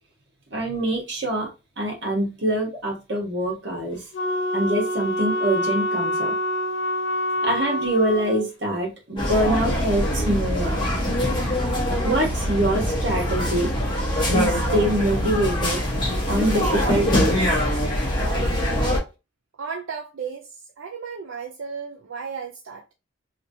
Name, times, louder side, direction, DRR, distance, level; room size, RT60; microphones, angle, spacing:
voice 1, 0.5-1.5 1.8-4.0 4.5-6.3 7.4-10.9 12.0-13.7 14.3-15.8 16.3-17.4, right 1 dB, 55° right, 1.3 m, -24 dB
Wind instrument woodwind instrument, 4.1-8.4, left 1 dB, 70° left, 0.7 m, -26 dB
sound 1, 9.2-19.0, equal, 25° left, 1.0 m, -23 dB
voice 2, 19.6-20.5 20.8-22.9, right 6 dB, 75° right, 0.5 m, -34 dB
3.3 x 2.8 x 2.6 m
head